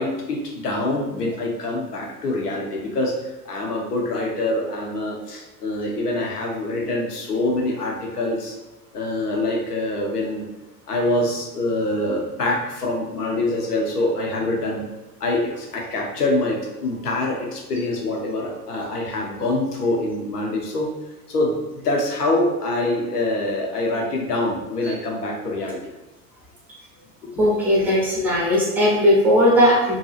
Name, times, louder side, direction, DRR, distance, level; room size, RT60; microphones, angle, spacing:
voice 1, 0.0-8.6 8.9-10.5 10.9-14.8 15.2-20.9 21.3-25.8 27.2-27.3, left 2 dB, 75° left, 0 dB, 0.7 m, -25 dB
voice 2, 27.4-30.0, equal, 5° right, -5 dB, 0.5 m, -17 dB
2.6 x 2.3 x 2.3 m, 1.0 s
figure-of-eight pair, 85°, 46 cm